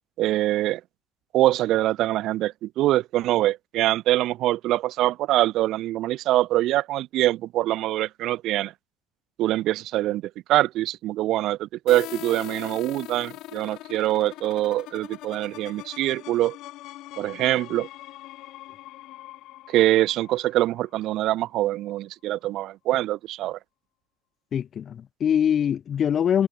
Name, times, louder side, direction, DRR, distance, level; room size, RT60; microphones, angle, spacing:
voice 1, 0.2-0.8 1.3-8.7 9.4-10.2 10.5-16.6 17.2-17.9 19.7-23.6, right 15 dB, 60° right, 1.1 m, -24 dB
sound 1, 11.9-21.5, left 16 dB, 65° left, 6.4 m, -42 dB
voice 2, 24.5-26.5, left 8 dB, 40° left, 0.5 m, -23 dB
cardioid pair, 120°, 0 cm